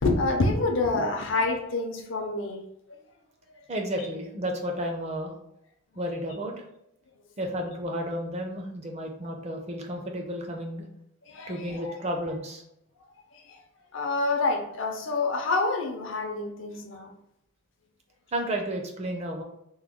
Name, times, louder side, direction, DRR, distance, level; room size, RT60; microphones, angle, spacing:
voice 1, 0.0-2.6 11.3-11.9 13.5-13.6 13.9-17.1, left 3 dB, 65° left, 2 dB, 0.6 m, -27 dB
voice 2, 3.7-5.3 6.0-6.5 7.4-10.9 11.5-12.6 18.3-19.4, equal, 30° right, 2 dB, 0.5 m, -32 dB
3.0 x 2.2 x 3.5 m, 0.79 s
head